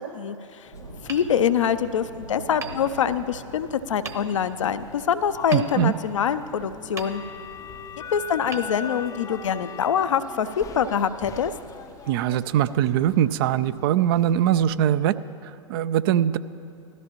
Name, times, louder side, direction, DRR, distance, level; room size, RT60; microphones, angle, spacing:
voice 1, 0.1-0.7 1.1-7.2 8.1-11.5, left 8 dB, 70° left, 12 dB, 0.5 m, -25 dB
sound 1, 0.6-14.8, left 6 dB, 20° left, 0.4 m, -42 dB
sound 2, 0.7-12.2, right 2 dB, 85° right, 0.9 m, -47 dB
Hammer, 1.1-2.1 2.6-3.5 4.0-4.7 5.5-6.5 6.9-7.7 8.5-9.4, right 4 dB, 15° right, 0.9 m, -41 dB
voice 2, 5.5-5.9 12.1-15.1 15.4-16.4, right 11 dB, 45° right, 15 dB, 0.4 m, -22 dB
18.5 x 13.5 x 2.9 m, 2.6 s
figure-of-eight pair, 95°, 17 cm